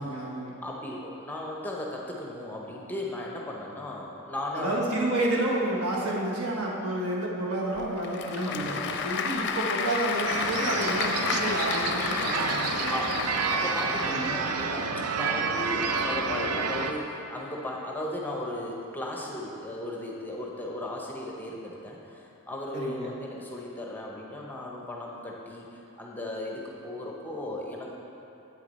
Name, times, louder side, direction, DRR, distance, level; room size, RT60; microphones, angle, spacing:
voice 1, 0.0-0.6 4.6-12.9 14.0-14.4 22.7-23.1, right 1 dB, 70° right, -3 dB, 1.2 m, -30 dB
voice 2, 0.6-4.9 8.4-9.1 12.9-25.7 26.0-27.9, left 1 dB, 10° left, -2 dB, 0.7 m, -36 dB
Applause / Crowd, 7.8-14.5, left 5 dB, 50° left, 0.5 m, -31 dB
sound 1, 10.3-16.9, right 5 dB, 90° right, 0.5 m, -29 dB
8.3 x 6.4 x 4.0 m, 2.9 s
head